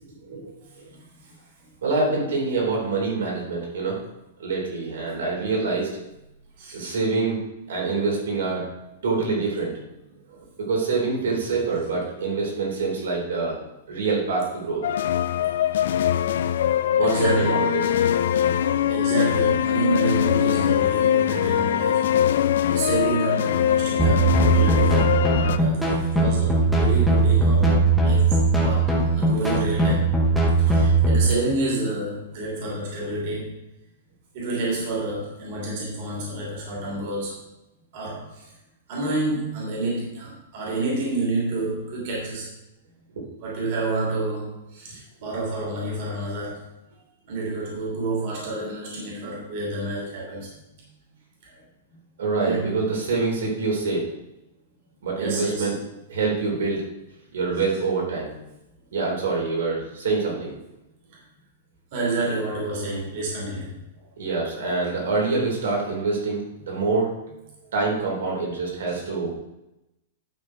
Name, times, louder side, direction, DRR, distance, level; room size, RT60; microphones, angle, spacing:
voice 1, 0.9-1.3 1.6-1.7 6.6-6.8 13.9-14.0 17.0-17.7 18.8-30.1 30.5-33.6 34.3-37.4 37.9-38.5 38.9-42.5 43.4-46.6 47.3-50.5 51.4-51.6 51.9-52.0 52.4-52.8 55.2-55.7 61.1-61.2 61.9-63.8 68.9-69.0, right 2 dB, 40° right, -4 dB, 3.1 m, -29 dB
voice 2, 1.8-4.0 4.4-5.9 6.7-7.4 7.7-8.7 9.0-9.8 10.4-13.6 13.9-14.8 17.0-17.7 43.1-43.2 52.2-54.0 55.0-55.7 56.1-56.8 57.3-58.4 58.9-60.5 64.2-67.1 67.7-69.3, right 4 dB, 80° right, -2 dB, 3.6 m, -25 dB
sound 1, 14.8-25.6, left 10 dB, 60° left, 0.4 m, -22 dB
sound 2, 24.0-31.3, right 3 dB, ahead, 0.9 m, -19 dB
11.5 x 4.6 x 5.1 m, 0.93 s
supercardioid pair, 175°, 0 cm